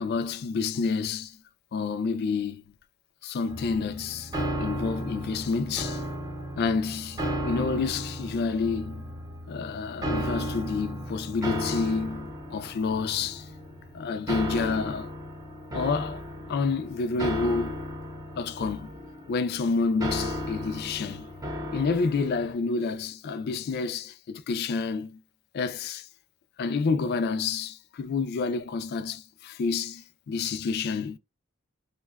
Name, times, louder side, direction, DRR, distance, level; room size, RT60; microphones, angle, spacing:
voice 1, 0.0-1.4 1.7-2.6 3.2-4.3 4.6-6.0 6.6-9.0 9.5-13.5 13.9-15.1 15.7-16.2 16.5-17.8 18.4-18.9 19.3-21.3 21.7-25.2 25.5-26.1 26.6-31.2, left 4 dB, 50° left, 0.3 m, -29 dB
sound 1, 3.5-22.5, equal, 15° right, 0.5 m, -35 dB
2.6 x 2.1 x 2.3 m
head